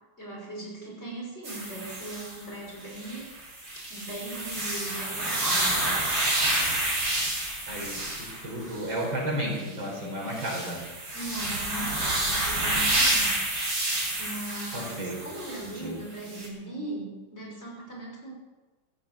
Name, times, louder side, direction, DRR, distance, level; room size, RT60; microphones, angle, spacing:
voice 1, 0.2-3.3 3.9-5.9 11.1-13.8 14.2-18.3, right 2 dB, 30° left, -4 dB, 6.4 m, -39 dB
sound 1, 1.4-2.4 2.9-9.0 9.6-9.7 10.2-15.8 16.3-16.5, right 1 dB, 50° right, 4.8 m, -29 dB
voice 2, 7.7-8.0 8.4-10.8 14.7-15.2 15.6-16.0, right 1 dB, 65° right, -1 dB, 5.1 m, -32 dB
15.5 x 10.5 x 8.1 m, 1.2 s
omnidirectional pair, 2.2 m